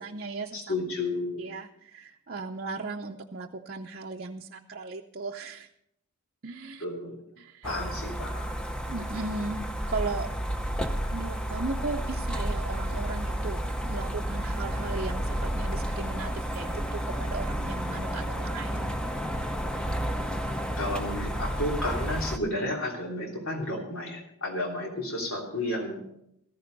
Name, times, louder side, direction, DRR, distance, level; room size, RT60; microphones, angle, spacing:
voice 1, 0.0-0.7 1.4-5.7 6.4-6.8 7.4-7.7 8.9-10.3 11.0-18.9, right 3 dB, 45° right, 0 dB, 0.6 m, -37 dB
voice 2, 0.5-1.4 6.8-7.2 7.6-8.6 20.8-26.0, left 1 dB, 70° left, 0 dB, 3.1 m, -32 dB
sound 1, 7.6-22.4, equal, 5° left, 0.7 m, -31 dB
14.5 x 14.5 x 4.0 m, 0.77 s
head